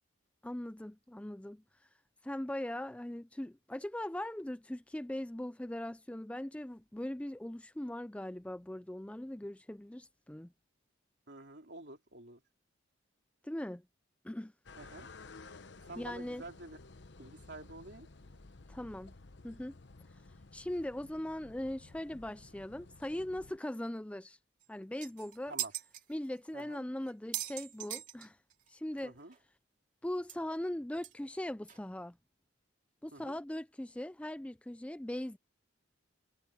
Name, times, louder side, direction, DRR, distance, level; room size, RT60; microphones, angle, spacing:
voice 1, 0.4-1.6 2.2-10.5 13.4-13.8 14.2-14.5 16.0-16.4 18.7-19.1 19.4-19.7 20.5-24.4 24.7-25.5 26.1-28.4 28.7-29.1 30.0-32.2 33.0-35.4, left 1 dB, 5° left, 0.4 m, -40 dB
voice 2, 11.3-12.4 14.8-15.1 15.8-16.8 17.2-18.1 25.5-25.7 26.5-26.8 29.0-29.3 33.1-33.4, right 2 dB, 60° right, 3.1 m, -49 dB
sound 1, 14.7-23.6, left 3 dB, 60° left, 1.0 m, -54 dB
sound 2, 24.6-24.7 25.0-26.0 26.6-26.7 27.1-28.7 29.0-29.1 29.3-29.4 30.3-30.4 31.0-31.1 31.7-31.8, right 11 dB, 40° right, 2.6 m, -40 dB
head